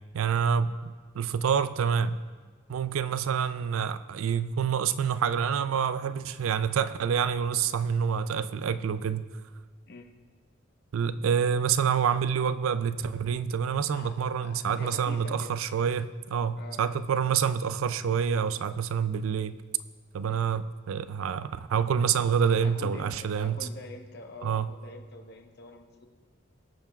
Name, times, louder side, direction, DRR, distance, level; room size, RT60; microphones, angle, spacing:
voice 1, 0.1-2.1 2.7-9.3 10.9-19.5 20.1-23.7 24.4-24.7, right 7 dB, 80° right, 14 dB, 0.4 m, -27 dB
voice 2, 14.4-15.5 16.6-16.8 20.2-20.5 22.6-26.1, left 2 dB, 50° left, 4 dB, 0.8 m, -45 dB
20.0 x 6.8 x 2.3 m, 1.6 s
head